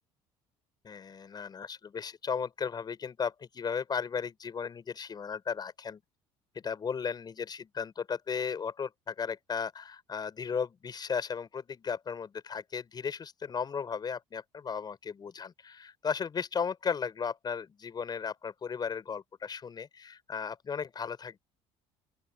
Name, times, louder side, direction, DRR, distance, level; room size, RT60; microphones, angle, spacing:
voice 1, 0.8-6.0 6.5-21.4, left 6 dB, 35° left, 6.6 m, -35 dB
open air
cardioid pair, 110°, 13 cm